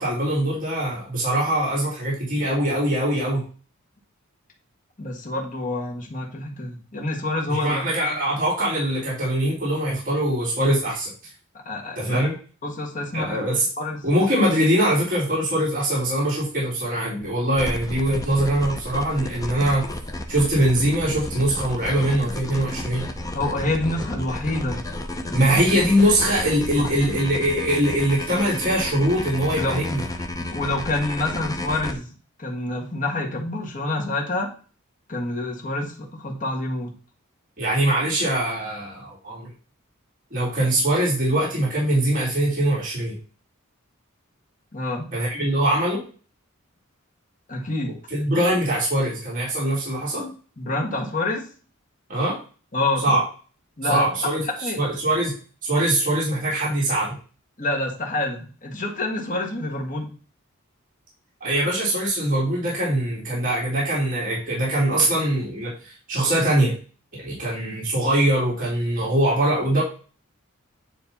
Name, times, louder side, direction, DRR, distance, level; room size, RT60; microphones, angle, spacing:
voice 1, 0.0-3.4 7.5-11.1 11.9-12.3 13.1-13.6 14.0-19.8 20.3-23.1 25.3-30.0 37.6-39.5 40.3-43.1 45.1-46.0 48.1-50.3 52.1-52.4 53.0-53.2 53.8-54.4 54.8-55.3 55.6-57.1 61.4-66.7 67.1-69.8, right 1 dB, 40° right, -6 dB, 3.2 m, -22 dB
voice 2, 5.0-7.8 11.6-12.3 12.6-13.4 13.8-14.0 23.3-24.8 25.3-25.5 26.7-26.9 29.6-29.8 30.4-32.1 32.4-34.5 35.1-36.9 44.7-45.1 47.5-48.0 50.6-51.5 52.7-53.2 53.8-54.3 54.6-54.8 57.6-60.1, left 2 dB, 40° left, 0 dB, 1.7 m, -27 dB
sound 1, 17.5-31.9, left 1 dB, 15° left, 0.7 m, -32 dB
9.4 x 3.3 x 4.2 m, 0.38 s
head